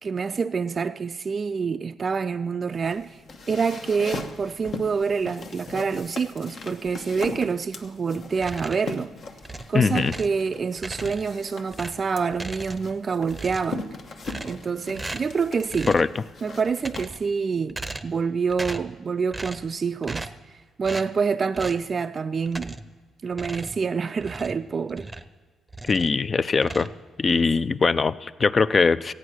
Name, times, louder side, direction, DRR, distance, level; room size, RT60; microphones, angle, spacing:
voice 1, 0.0-3.2 3.5-9.1 9.7-13.9 14.4-15.9 16.4-17.8 18.0-22.8 23.2-25.1, right 5 dB, 40° right, 0.3 m, -27 dB
sound 1, 2.7-17.1, left 4 dB, 55° left, 1.0 m, -39 dB
sound 2, 8.3-9.0 9.4-10.4 10.8-11.4 11.7-13.0 13.3-13.8 14.2-14.7 14.9-15.4 15.7-16.1 16.7-17.3 17.7-18.2 18.5-19.0 19.3-19.7 20.0-20.5 20.8-21.1 21.5-21.9 22.5-23.0 23.3-25.4 25.7-26.2 26.5-27.4, right 2 dB, 15° right, 0.7 m, -37 dB
voice 2, 9.7-10.1 15.9-16.1 25.9-26.9 27.2-29.1, left 4 dB, 35° left, 0.4 m, -21 dB
14.5 x 8.9 x 6.2 m
cardioid pair, 90°, 0 cm